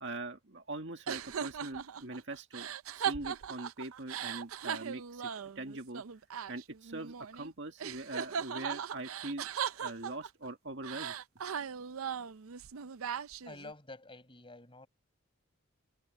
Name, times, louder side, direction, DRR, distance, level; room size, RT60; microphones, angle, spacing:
voice 1, 0.0-5.3 5.6-6.0 6.5-9.5 9.7-11.1, right 2 dB, 55° right, 2.0 m, -42 dB
sound 1, 1.1-7.5 7.8-10.5 10.8-13.7, right 8 dB, 80° right, 0.5 m, -39 dB
voice 2, 13.4-14.9, left 2 dB, 25° left, 5.9 m, -49 dB
head